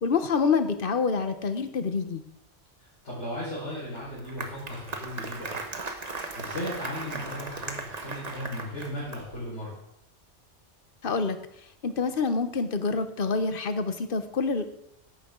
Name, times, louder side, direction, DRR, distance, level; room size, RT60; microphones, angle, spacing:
voice 1, 0.0-2.2 11.0-11.4 11.8-14.7, left 4 dB, 50° left, 10 dB, 1.2 m, -27 dB
voice 2, 3.0-5.6 6.0-9.8, equal, 70° left, -8 dB, 5.1 m, -36 dB
Applause, 4.0-9.4, right 3 dB, 35° right, 1.2 m, -37 dB
15.0 x 11.5 x 3.8 m, 0.77 s
omnidirectional pair, 1.2 m